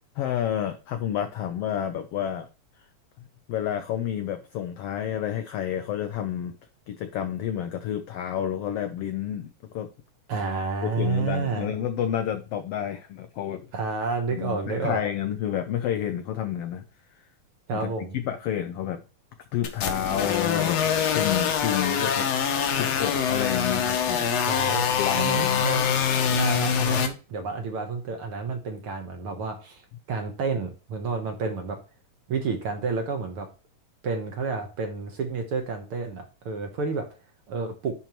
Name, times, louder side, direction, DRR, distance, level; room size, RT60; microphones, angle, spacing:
voice 1, 0.2-2.5 3.5-6.5 6.9-9.9 10.8-13.6 14.3-16.8 17.7-19.0 19.5-20.9 21.1-22.3 22.7-24.4 24.9-25.7, left 10 dB, 80° left, 9 dB, 1.3 m, -30 dB
voice 2, 10.3-11.7 13.7-15.0 17.7-18.2 24.4-24.9 25.1-25.9 26.2-29.8 30.1-31.8 32.3-33.5 34.0-37.1 37.5-37.9, right 4 dB, 60° right, 4 dB, 1.6 m, -30 dB
sound 1, 19.6-27.1, left 7 dB, 65° left, 2.1 m, -24 dB
10.5 x 4.5 x 3.0 m, 0.33 s
omnidirectional pair, 3.5 m